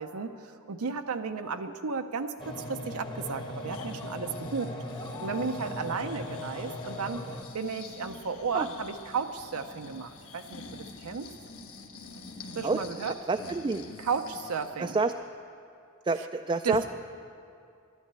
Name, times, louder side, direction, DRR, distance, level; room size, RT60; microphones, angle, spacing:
voice 1, 0.0-4.7 5.2-7.2 7.5-11.3 12.5-13.1 14.0-15.0 16.6-16.8, right 5 dB, 85° right, 7 dB, 0.6 m, -34 dB
sound 1, 2.4-7.4, left 1 dB, 20° left, 1.0 m, -39 dB
Breathing, 3.4-14.8 15.2-15.3, left 3 dB, 70° left, 1.3 m, -46 dB
voice 2, 13.3-13.9 14.8-15.1 16.0-16.9, right 3 dB, 20° right, 6 dB, 0.3 m, -28 dB
11.5 x 10.5 x 9.8 m, 2.5 s
head